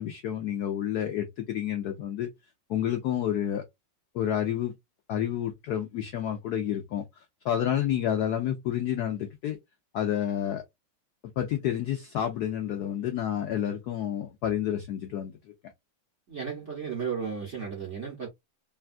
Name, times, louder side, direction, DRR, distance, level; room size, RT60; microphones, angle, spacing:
voice 1, 0.0-2.3 2.7-3.6 4.1-4.7 5.1-9.6 9.9-10.6 11.4-15.3, left 10 dB, 80° left, 0.8 m, -29 dB
voice 2, 16.3-18.3, right 6 dB, 55° right, 0.8 m, -34 dB
3.3 x 2.3 x 2.4 m
omnidirectional pair, 2.2 m